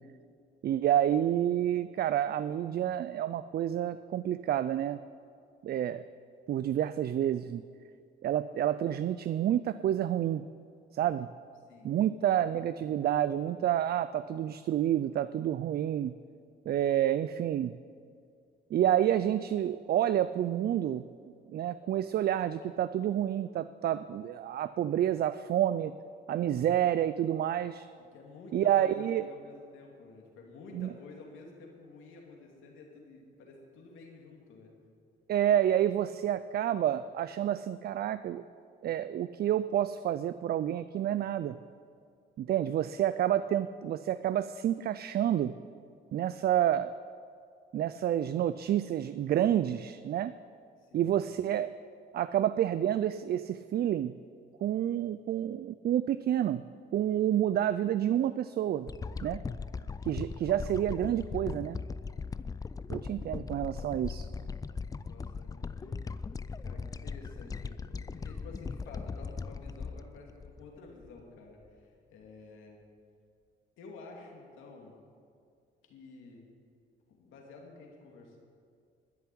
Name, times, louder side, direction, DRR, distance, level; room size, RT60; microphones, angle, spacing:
voice 1, 0.6-5.0 5.6-6.0 6.5-7.6 8.2-10.4 10.9-11.3 11.8-16.1 16.7-17.8 18.7-21.0 21.5-25.9 26.3-27.9 28.5-29.2 30.7-30.9 35.3-38.4 38.8-41.6 42.4-45.5 46.1-46.9 47.7-50.4 50.9-51.7 52.1-54.1 54.6-56.6 56.9-58.9 59.2-59.4 60.0-61.8 62.9-64.3, right 11 dB, 50° right, 14 dB, 0.4 m, -29 dB
voice 2, 28.0-34.7 50.8-51.1 65.0-66.1 66.6-72.8 73.8-75.0 75.9-76.5 77.1-78.4, left 3 dB, 90° left, 0 dB, 2.6 m, -51 dB
sound 1, 58.9-71.2 71.7-71.8, left 4 dB, 20° left, 0.3 m, -39 dB
12.5 x 6.9 x 10.0 m, 2.4 s
cardioid pair, 90°, 20 cm